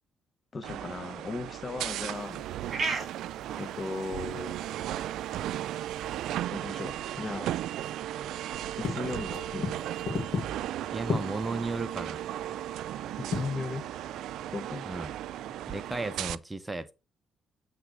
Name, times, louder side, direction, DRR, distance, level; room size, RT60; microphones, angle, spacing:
voice 1, 0.5-2.4 3.6-4.6 6.5-7.5 8.8-9.7 13.2-13.8 14.5-14.9, left 3 dB, 35° left, 0.8 m, -37 dB
sound 1, 0.6-16.4, right 12 dB, 80° right, 0.3 m, -36 dB
sound 2, 2.0-16.1, right 4 dB, 45° right, 2.0 m, -44 dB
sound 3, 8.6-14.5, left 4 dB, 65° left, 1.7 m, -36 dB
voice 2, 10.9-12.2 14.9-15.1 15.7-16.9, right 3 dB, 20° right, 0.9 m, -34 dB
7.9 x 3.5 x 6.1 m
cardioid pair, 90°, 0 cm